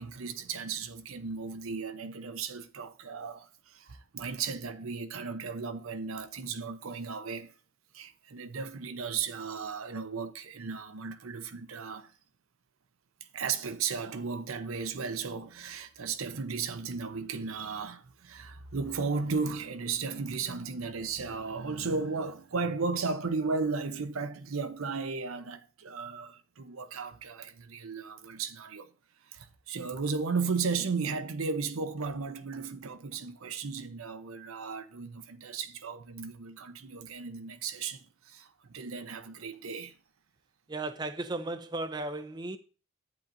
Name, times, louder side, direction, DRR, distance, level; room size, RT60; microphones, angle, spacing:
voice 1, 0.0-7.5 7.9-12.1 13.3-28.9 29.3-39.9, right 4 dB, 85° right, 0.7 m, -35 dB
voice 2, 40.7-42.6, right 2 dB, 20° right, 0.4 m, -35 dB
10.5 x 8.8 x 2.6 m
head